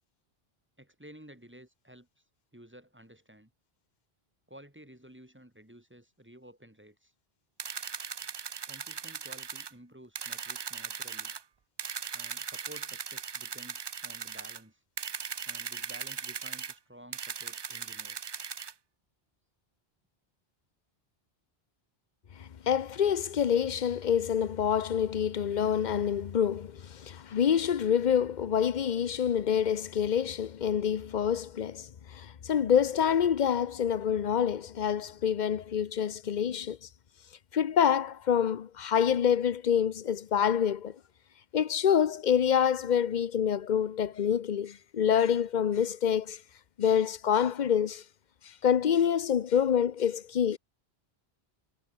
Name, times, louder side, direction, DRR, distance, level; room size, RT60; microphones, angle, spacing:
voice 1, 0.8-2.1 2.5-3.5 4.5-7.1 8.7-11.3 12.1-14.8 15.5-18.2, right 1 dB, 10° right, 2.3 m, -53 dB
sound 1, 7.6-9.7 10.2-11.4 11.8-14.6 15.0-16.7 17.1-18.7, right 6 dB, 45° right, 0.3 m, -39 dB
voice 2, 22.4-36.8 37.5-40.9 41.5-46.4 46.8-48.0 48.6-50.6, left 8 dB, 50° left, 0.8 m, -27 dB
omnidirectional pair, 1.0 m